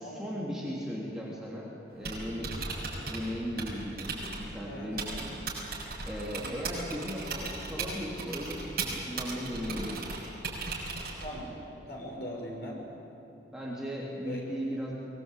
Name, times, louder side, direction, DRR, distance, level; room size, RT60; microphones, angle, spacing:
voice 1, 0.0-2.6 3.1-5.3 6.1-10.0 13.5-14.9, equal, 5° right, -5 dB, 3.2 m, -37 dB
Typing, 1.9-11.5, right 3 dB, 55° right, 6.3 m, -38 dB
voice 2, 4.6-4.9 6.3-6.6 11.2-11.5 11.9-12.8 14.2-14.4, equal, 60° left, -1 dB, 6.1 m, -40 dB
23.5 x 20.0 x 8.4 m, 2.8 s
head